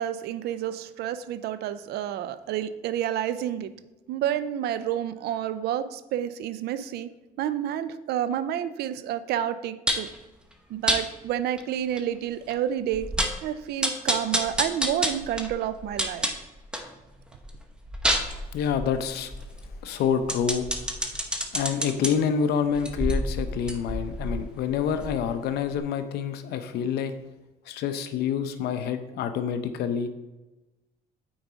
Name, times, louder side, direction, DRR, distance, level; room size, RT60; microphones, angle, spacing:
voice 1, 0.0-3.7 4.1-7.1 7.4-10.1 10.7-13.1 13.4-16.3, right 10 dB, 70° right, 13 dB, 0.5 m, -29 dB
sound 1, 9.9-10.2 10.9-11.0 11.6-11.7 12.0-12.1 12.5-12.6 12.9-13.4 13.8-16.9 17.3-22.1 22.7-25.4 25.7-25.8, equal, 5° right, 0.9 m, -29 dB
voice 2, 18.5-19.3 19.8-20.7 21.5-27.1 27.7-30.1, left 7 dB, 75° left, 9 dB, 0.7 m, -27 dB
8.9 x 4.7 x 3.9 m, 1.1 s
cardioid pair, 110°, 17 cm